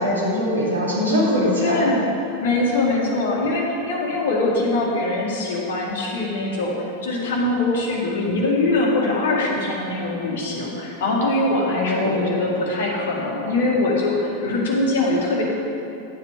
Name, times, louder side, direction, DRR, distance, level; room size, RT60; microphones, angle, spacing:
voice 1, 0.0-1.8 4.1-4.2 11.6-12.4, left 1 dB, 70° right, -5 dB, 2.6 m, -22 dB
voice 2, 1.6-2.0 2.4-6.7 7.0-15.4, left 2 dB, 60° left, -2 dB, 2.0 m, -22 dB
10.5 x 7.6 x 4.9 m, 2.8 s
figure-of-eight pair, 90°, 0 cm